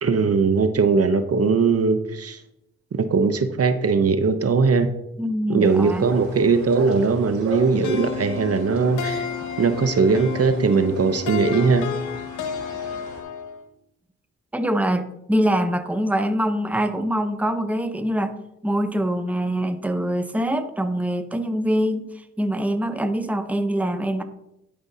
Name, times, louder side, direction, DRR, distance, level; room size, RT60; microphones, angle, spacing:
voice 1, 0.0-2.4 2.9-4.9 5.5-9.3 9.6-11.8, right 4 dB, 50° right, 10 dB, 0.8 m, -20 dB
voice 2, 5.2-6.0 14.5-18.3 18.6-24.2, equal, 5° right, 9 dB, 0.7 m, -24 dB
sound 1, 5.6-13.2, right 2 dB, 70° right, 2.3 m, -39 dB
sound 2, 7.8-13.6, left 8 dB, 80° left, 0.8 m, -31 dB
11.5 x 5.2 x 2.7 m, 0.84 s
supercardioid pair, 45°, 30 cm